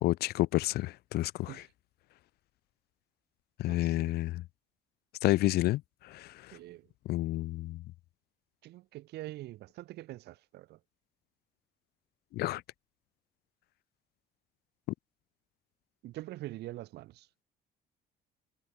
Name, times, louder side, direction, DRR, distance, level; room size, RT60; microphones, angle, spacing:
voice 1, 0.0-1.6 3.6-4.4 5.2-6.6 7.1-7.8 12.3-12.6, left 17 dB, 70° left, 0.5 m, -30 dB
voice 2, 3.7-4.1 6.5-6.8 8.6-10.8 16.0-17.3, right 16 dB, 75° right, 1.9 m, -44 dB
cardioid pair, 110°, 17 cm